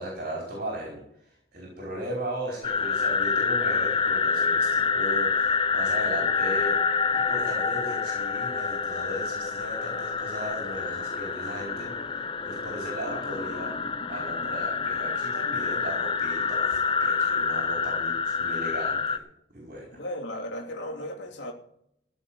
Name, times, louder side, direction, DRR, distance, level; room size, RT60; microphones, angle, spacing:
voice 1, 0.0-13.7 14.1-19.2 19.5-20.0, right 1 dB, 45° right, 4.6 m, -37 dB
sound 1, 2.6-19.2, left 5 dB, 25° left, 0.7 m, -27 dB
voice 2, 13.1-13.5 20.0-21.5, left 1 dB, 65° left, 3.1 m, -36 dB
15.5 x 6.4 x 8.8 m
head